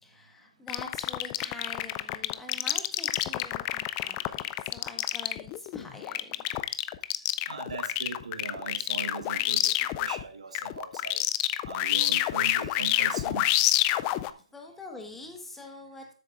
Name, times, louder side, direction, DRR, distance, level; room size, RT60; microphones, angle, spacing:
voice 1, 0.0-6.4 14.0-16.1, left 2 dB, 5° left, 1.4 m, -45 dB
sound 1, 0.7-10.2 10.5-14.3, left 16 dB, 25° left, 0.4 m, -28 dB
voice 2, 7.5-9.6 10.0-11.2 11.6-13.4, right 5 dB, 80° right, 1.2 m, -39 dB
12.5 x 8.1 x 2.5 m
hypercardioid pair, 145°, 3 cm